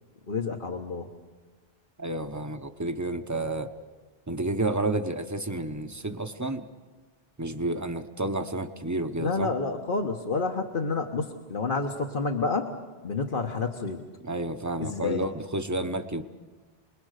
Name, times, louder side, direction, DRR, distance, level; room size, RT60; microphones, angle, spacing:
voice 1, 0.3-1.1 9.2-12.7 13.0-14.0 14.8-15.2, left 4 dB, 60° left, 2 dB, 1.5 m, -29 dB
voice 2, 2.0-3.7 4.3-6.6 7.4-9.5 14.2-16.2, right 2 dB, 15° right, 7 dB, 1.0 m, -30 dB
29.5 x 21.0 x 6.6 m, 1.3 s
omnidirectional pair, 1.0 m